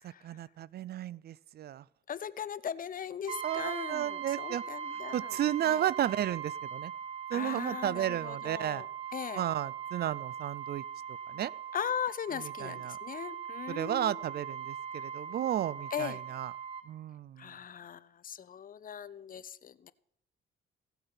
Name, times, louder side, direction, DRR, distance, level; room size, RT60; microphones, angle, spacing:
voice 1, 0.0-1.8 3.3-4.6 5.1-6.9 7.3-8.8 9.4-10.8 11.3-11.5 12.4-13.0 13.7-16.5 16.9-17.5, right 11 dB, 55° right, 23 dB, 0.4 m, -33 dB
voice 2, 2.1-5.8 7.3-8.9 9.1-9.4 11.7-14.1 15.9-16.2 17.4-19.9, left 8 dB, 45° left, 16 dB, 0.6 m, -39 dB
Brass instrument, 3.3-16.9, right 8 dB, 30° right, 1.3 m, -40 dB
16.5 x 8.0 x 5.7 m, 0.74 s
cardioid pair, 90°, 20 cm